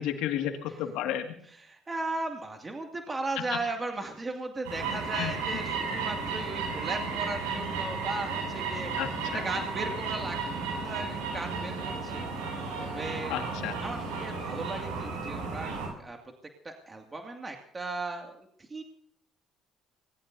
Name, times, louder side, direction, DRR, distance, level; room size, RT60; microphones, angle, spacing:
voice 1, 0.0-1.3 5.1-5.3 9.0-9.4 13.3-13.8, left 10 dB, 75° left, 5 dB, 2.1 m, -32 dB
voice 2, 1.6-8.9 9.4-12.2 12.8-13.5 13.8-15.7 16.0-16.2 16.6-18.8, right 2 dB, 25° right, 2 dB, 2.3 m, -37 dB
sound 1, 4.6-15.9, right 4 dB, 80° right, 7.0 m, -33 dB
25.0 x 20.0 x 2.7 m, 0.69 s
hypercardioid pair, 55°, 0 cm